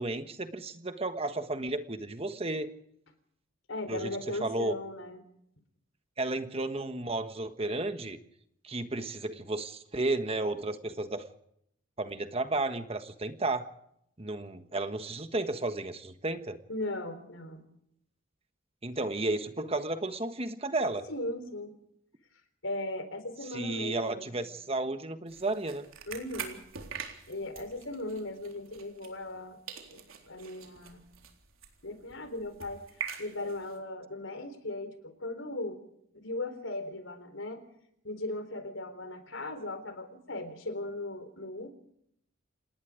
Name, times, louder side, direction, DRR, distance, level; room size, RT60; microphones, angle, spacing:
voice 1, 0.0-2.7 3.9-4.7 6.2-8.2 8.6-11.2 12.0-13.7 14.2-16.6 18.8-21.1 23.5-25.9, right 2 dB, 30° right, 9 dB, 1.4 m, -33 dB
voice 2, 3.7-5.2 16.7-17.7 21.1-21.7 22.6-24.3 26.1-26.6 27.3-29.6 29.9-31.0 31.8-32.8 33.2-35.8 36.1-37.7 38.0-41.7, left 2 dB, 70° left, 10 dB, 3.8 m, -38 dB
sound 1, 25.3-29.4 29.7-33.8, right 7 dB, 85° right, 3.8 m, -44 dB
28.0 x 19.5 x 5.1 m, 0.72 s
head